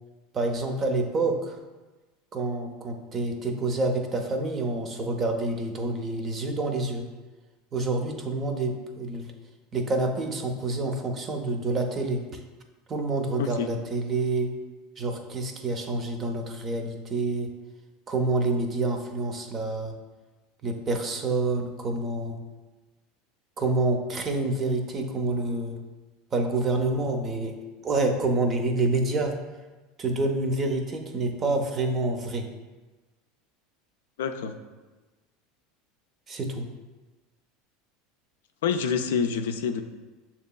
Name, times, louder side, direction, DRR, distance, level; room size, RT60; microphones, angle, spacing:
voice 1, 0.3-1.6 2.3-7.1 7.7-9.3 9.7-12.4 12.9-14.5 15.0-17.5 18.1-19.9 20.6-22.4 23.6-25.8 26.3-27.5 27.8-29.4 30.0-32.5 36.3-36.7, right 2 dB, 35° right, 5 dB, 0.6 m, -27 dB
voice 2, 13.4-13.7 34.2-34.6 38.6-39.8, left 6 dB, 80° left, 8 dB, 0.3 m, -27 dB
6.5 x 2.9 x 2.3 m, 1.2 s
hypercardioid pair, 90°, 0 cm